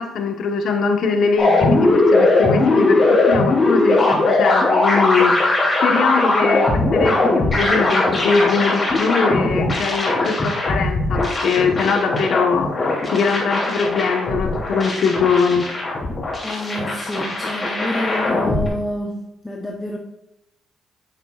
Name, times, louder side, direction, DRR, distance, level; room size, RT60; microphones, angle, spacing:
voice 1, 0.0-15.6, left 5 dB, 70° left, 4 dB, 1.1 m, -21 dB
sound 1, 1.4-18.7, left 2 dB, 30° left, 3.0 m, -19 dB
voice 2, 16.4-20.0, left 1 dB, 15° left, 0 dB, 0.9 m, -28 dB
8.5 x 8.3 x 2.4 m, 0.87 s
cardioid pair, 90°, 0 cm